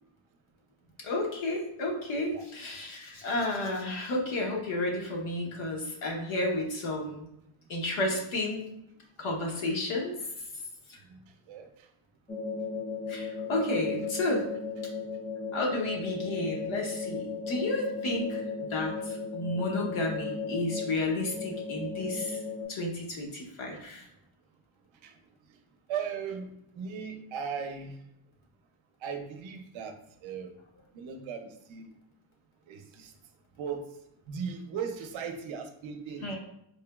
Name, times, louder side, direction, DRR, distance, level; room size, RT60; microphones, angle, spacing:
voice 1, 1.0-7.3 7.7-8.7 9.2-10.2 10.9-11.0 13.1-14.5 15.5-22.4 22.7-24.0 36.2-36.4, left 2 dB, 75° left, 0 dB, 1.0 m, -32 dB
sound 1, 12.3-22.6, left 4 dB, 15° left, 0.4 m, -36 dB
voice 2, 25.9-28.0 29.0-30.0 30.2-30.5 30.9-31.9 32.7-33.1 33.6-33.8 34.3-36.4, right 6 dB, 70° right, 5 dB, 0.6 m, -37 dB
4.3 x 2.9 x 2.2 m, 0.77 s
wide cardioid pair, 145°, 49 cm